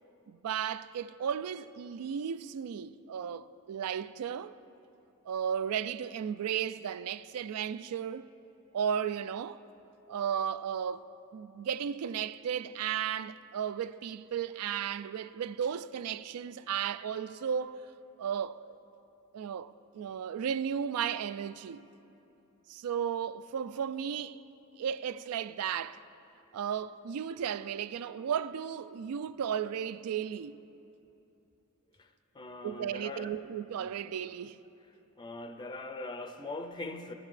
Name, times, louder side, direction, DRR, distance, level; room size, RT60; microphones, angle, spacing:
voice 1, 0.3-4.5 5.3-8.3 8.7-9.6 10.1-17.8 18.2-18.8 19.3-21.8 22.7-24.4 24.8-26.0 26.5-30.6 32.6-34.6, right 8 dB, 90° right, 0.3 m, -34 dB
voice 2, 32.3-33.4 33.8-33.9 35.2-37.1, left 2 dB, 20° left, 0.4 m, -41 dB
15.5 x 13.0 x 3.3 m
head